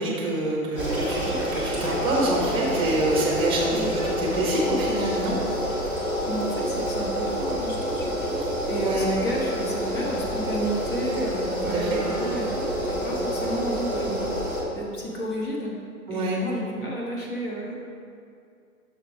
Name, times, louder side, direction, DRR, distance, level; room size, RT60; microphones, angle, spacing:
voice 1, 0.0-5.4 8.8-9.1 11.7-12.0 13.1-13.4 16.1-16.4, right 1 dB, 10° right, -2 dB, 1.1 m, -26 dB
sound 1, 0.8-14.6, equal, 20° left, 1.6 m, -28 dB
voice 2, 6.3-14.2 14.7-15.8 16.1-17.7, right 1 dB, 35° left, -3 dB, 1.4 m, -32 dB
6.6 x 4.4 x 5.0 m, 2.3 s
hypercardioid pair, 135°, 44 cm